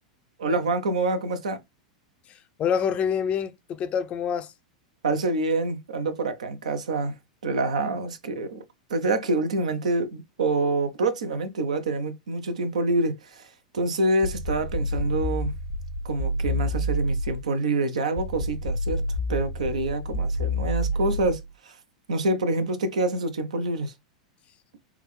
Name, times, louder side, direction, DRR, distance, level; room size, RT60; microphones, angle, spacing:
voice 1, 0.4-1.6 5.0-7.1 7.4-8.6 8.9-13.5 13.7-15.6 16.0-19.0 19.3-21.8 22.1-23.9, right 2 dB, 80° right, 0.7 m, -26 dB
voice 2, 2.3-4.5, left 7 dB, 35° left, 0.4 m, -27 dB
sound 1, 14.2-17.5 18.2-21.5, equal, 80° left, 0.8 m, -28 dB
3.5 x 2.3 x 3.1 m
hypercardioid pair, 100°, 4 cm